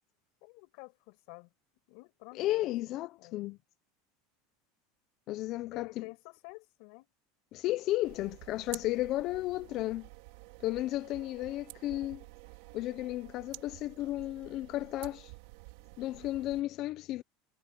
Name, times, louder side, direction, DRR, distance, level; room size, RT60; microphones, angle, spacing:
voice 1, 0.4-1.5 1.9-3.5 5.7-7.1, left 31 dB, 60° left, 5.8 m, -50 dB
voice 2, 2.4-3.6 5.3-6.0 7.5-10.1 10.6-12.2 12.7-15.3 16.0-17.2, left 16 dB, 45° left, 0.8 m, -33 dB
sound 1, 8.0-16.6, right 25 dB, 65° right, 4.2 m, -50 dB
supercardioid pair, 145°, 0 cm